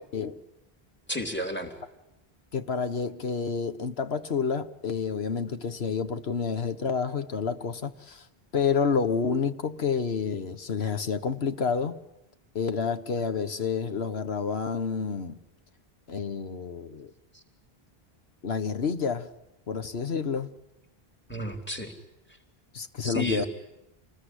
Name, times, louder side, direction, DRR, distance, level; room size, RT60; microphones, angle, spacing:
voice 1, 1.1-1.7 17.3-17.4 21.3-21.9 23.0-23.5, left 1 dB, 10° left, 3.5 m, -32 dB
voice 2, 2.5-8.2 8.5-12.0 12.5-15.4 16.1-17.1 18.4-19.3 19.7-20.5 22.7-23.4, left 5 dB, 85° left, 1.6 m, -29 dB
27.5 x 20.5 x 9.9 m
omnidirectional pair, 1.0 m